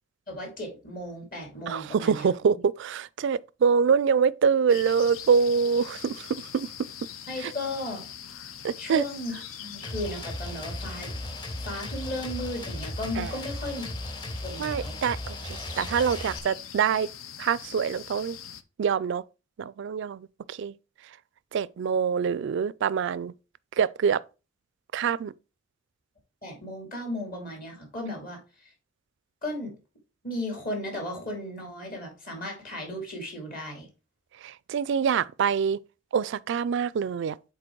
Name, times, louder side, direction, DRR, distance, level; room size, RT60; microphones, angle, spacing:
voice 1, 0.3-2.6 7.3-8.0 8.8-11.1 11.6-13.8 14.4-15.0 26.4-28.4 29.4-29.7 30.2-33.9, left 1 dB, 45° left, 2.6 m, -35 dB
voice 2, 1.7-6.3 6.5-6.7 7.4-7.5 8.6-9.0 13.2-13.3 14.6-17.1 17.4-18.4 18.8-19.2 19.6-20.7 21.5-23.3 23.8-24.2 24.9-25.3 34.4-35.8 36.1-37.4, right 6 dB, 60° right, 0.3 m, -25 dB
sound 1, 4.7-18.6, left 9 dB, 80° left, 0.6 m, -42 dB
sound 2, 9.8-16.4, left 1 dB, 20° left, 1.0 m, -37 dB
7.5 x 4.1 x 4.5 m
head